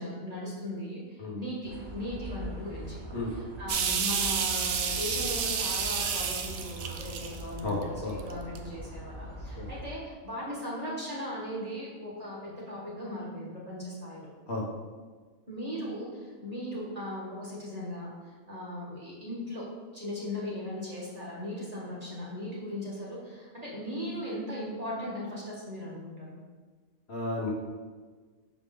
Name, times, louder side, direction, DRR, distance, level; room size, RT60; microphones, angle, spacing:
voice 1, 0.0-3.0 3.6-14.3 15.5-19.6 19.9-26.4, left 1 dB, 30° right, -6 dB, 1.8 m, -38 dB
sound 1, 1.6-9.9, right 1 dB, 85° right, 1.5 m, -42 dB
sound 2, 3.7-7.8 8.3-8.6, right 6 dB, 65° right, 0.9 m, -30 dB
voice 2, 7.6-8.2 9.6-9.7 14.5-14.6 27.1-27.5, left 2 dB, 50° left, -4 dB, 1.3 m, -33 dB
6.3 x 5.1 x 3.8 m, 1.4 s
omnidirectional pair, 1.4 m